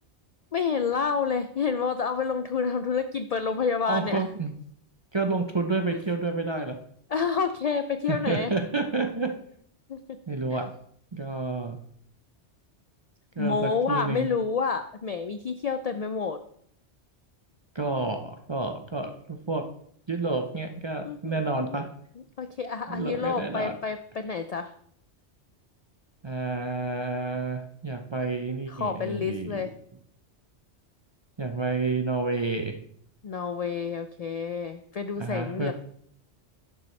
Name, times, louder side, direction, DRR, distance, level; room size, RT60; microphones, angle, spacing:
voice 1, 0.5-4.2 5.9-6.0 6.6-6.7 7.1-8.6 9.9-10.0 10.5-10.6 13.4-16.4 21.0-21.8 22.4-24.7 28.7-29.7 33.2-35.7, left 5 dB, 65° left, 9 dB, 0.3 m, -29 dB
voice 2, 3.8-4.5 5.1-6.8 8.1-9.4 10.3-10.7 11.1-11.8 13.4-14.3 17.7-19.7 20.1-21.9 22.9-23.8 26.2-29.7 31.4-32.8 35.2-35.7, right 3 dB, 35° right, 5 dB, 0.5 m, -29 dB
11.0 x 7.0 x 3.2 m, 0.66 s
omnidirectional pair, 1.2 m